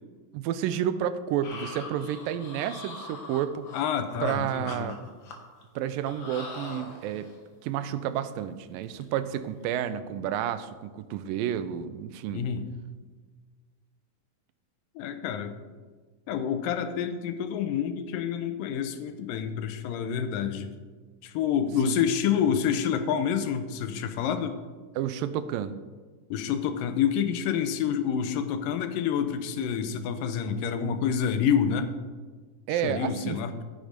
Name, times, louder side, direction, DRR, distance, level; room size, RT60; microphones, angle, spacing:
voice 1, 0.3-3.6 4.2-5.0 5.8-7.3 7.6-12.5 21.8-22.0 25.0-25.7 32.7-33.4, right 10 dB, 90° right, 12 dB, 2.4 m, -30 dB
A lot of yawning, 1.4-4.4 4.6-5.6 6.0-7.4 7.8-7.9 8.2-8.4 8.7-9.0 9.4-9.6, left 3 dB, 50° left, 1.5 m, -42 dB
voice 2, 3.7-4.9 12.3-12.6 15.0-15.6 16.3-20.7 21.2-24.6 26.3-31.9 32.7-33.5, left 8 dB, 85° left, 8 dB, 2.5 m, -28 dB
14.5 x 6.7 x 5.1 m, 1.4 s
omnidirectional pair, 3.9 m